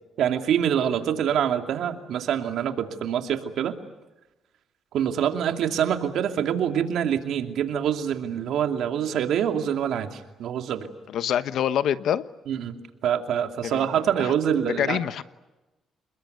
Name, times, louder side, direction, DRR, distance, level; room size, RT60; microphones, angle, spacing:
voice 1, 0.2-3.8 4.9-10.9 12.5-12.8 13.0-15.0, right 9 dB, 75° right, 6 dB, 2.7 m, -25 dB
voice 2, 11.1-12.2 13.6-14.3 14.8-15.2, left 10 dB, 75° left, 14 dB, 1.1 m, -26 dB
28.0 x 21.5 x 9.4 m, 1.0 s
cardioid pair, 90°, 0 cm